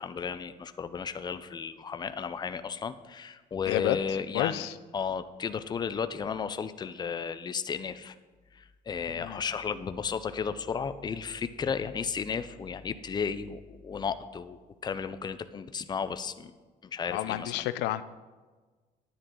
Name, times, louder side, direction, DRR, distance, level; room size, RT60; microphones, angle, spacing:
voice 1, 0.0-4.6 4.9-8.2 8.5-16.5 16.8-17.7, left 6 dB, 25° left, 12 dB, 0.5 m, -34 dB
voice 2, 3.7-4.0 4.3-4.7 9.2-9.4 17.1-18.0, left 14 dB, 85° left, 14 dB, 0.5 m, -29 dB
10.5 x 9.8 x 3.8 m, 1.3 s
cardioid pair, 110°, 17 cm